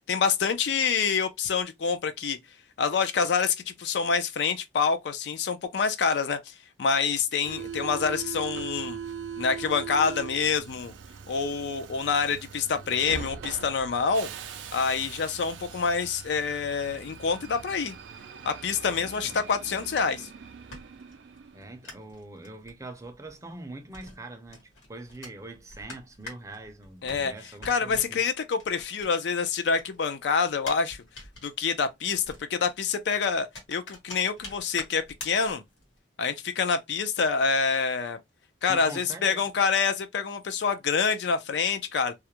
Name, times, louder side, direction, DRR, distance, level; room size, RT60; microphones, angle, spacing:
voice 1, 0.1-2.4 2.8-6.5 6.8-9.0 9.4-10.9 11.3-14.3 14.7-17.9 18.4-20.3 27.0-27.3 27.6-31.0 31.4-32.2 32.5-35.6 36.2-38.2 38.6-42.1, left 5 dB, 65° left, 0.4 m, -26 dB
Subway metro underground, 7.4-21.8, right 7 dB, 80° right, 0.4 m, -41 dB
voice 2, 18.9-19.4 21.5-28.2 38.7-39.5, right 2 dB, 15° right, 0.4 m, -43 dB
sound 1, 20.3-29.4 29.7-36.0, left 2 dB, 90° left, 1.1 m, -47 dB
2.3 x 2.1 x 2.8 m
head